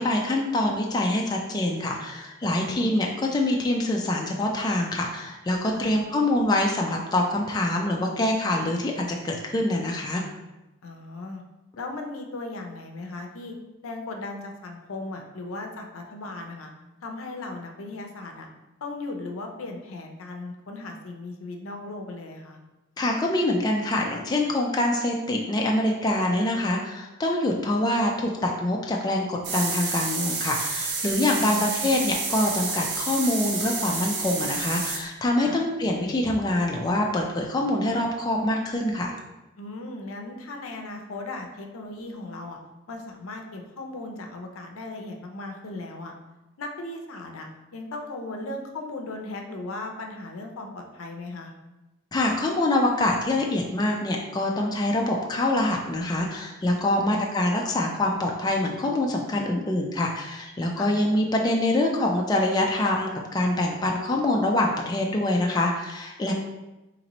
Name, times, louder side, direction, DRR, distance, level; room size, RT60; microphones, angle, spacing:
voice 1, 0.0-10.2 23.0-39.2 52.1-66.3, left 1 dB, 20° left, 0 dB, 0.3 m, -25 dB
voice 2, 2.6-3.0 5.7-5.9 10.8-11.4 11.8-13.6 13.8-16.7 17.0-18.5 18.8-22.6 31.4-31.9 35.4-35.6 39.6-42.6 42.9-46.1 46.6-51.5 56.9-57.3 60.8-60.9 66.3-66.4, left 2 dB, 85° left, 3 dB, 0.5 m, -37 dB
sound 1, 29.4-35.0, right 4 dB, 55° right, 0.6 m, -29 dB
3.0 x 2.9 x 4.0 m, 1.0 s
head